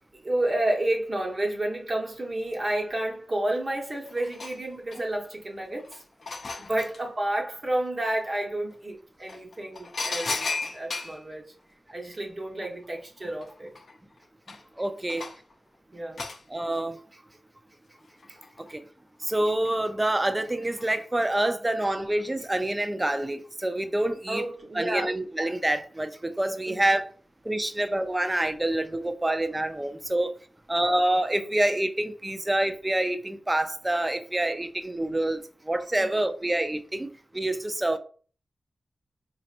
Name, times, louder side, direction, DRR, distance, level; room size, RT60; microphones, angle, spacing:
voice 1, 0.2-6.0 6.6-10.5 10.7-11.5 11.9-13.7 15.9-16.2 24.3-25.1 26.7-26.8 30.8-30.9 36.0-36.3, right 1 dB, 45° right, 1.2 m, -30 dB
sound 1, 3.6-3.7 4.1-5.3 5.8-7.0 8.7-8.8 9.3-11.2 12.8-12.9 13.2-15.5 16.2-16.4 18.0-18.7 19.2-19.8 20.7-21.0 21.4-21.5, left 3 dB, 70° left, 0.6 m, -35 dB
voice 2, 14.8-15.3 16.5-17.0 18.6-18.8 19.2-24.4 24.7-27.1 27.4-30.3 30.7-38.0, right 1 dB, 20° right, 0.5 m, -27 dB
4.2 x 2.8 x 2.5 m
cardioid pair, 55°, 0 cm